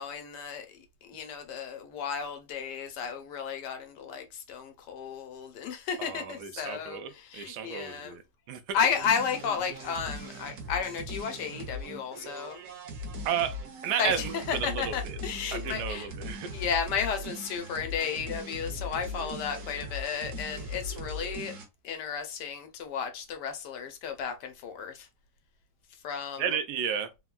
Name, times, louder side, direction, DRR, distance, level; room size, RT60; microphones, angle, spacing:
voice 1, 0.0-8.2 8.7-12.6 14.0-16.1 16.5-21.5 21.8-25.1 26.0-26.4, left 7 dB, 90° left, 1.3 m, -33 dB
voice 2, 6.0-8.2 8.5-8.6 13.2-13.6 13.8-15.2 15.5-16.5 26.4-27.1, right 8 dB, 80° right, 1.2 m, -32 dB
sound 1, 8.9-21.7, left 1 dB, 60° right, 0.9 m, -39 dB
3.5 x 2.2 x 2.3 m
omnidirectional pair, 1.8 m